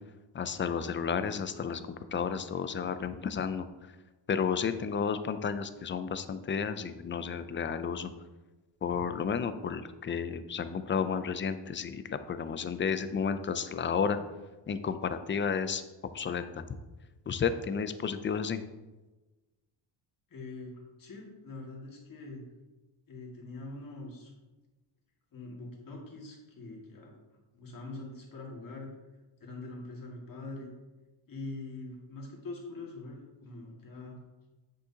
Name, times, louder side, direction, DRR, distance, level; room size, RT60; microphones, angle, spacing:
voice 1, 0.3-1.8 2.1-3.7 4.3-8.1 8.8-14.2 14.7-15.8 16.1-16.6 17.3-18.6, left 6 dB, 25° left, 11 dB, 0.4 m, -32 dB
voice 2, 20.3-22.4 23.1-24.3 25.3-28.9 29.4-30.7 31.3-34.2, left 2 dB, 45° left, -2 dB, 2.0 m, -44 dB
7.6 x 6.5 x 2.8 m, 1.2 s
cardioid pair, 110°, 45 cm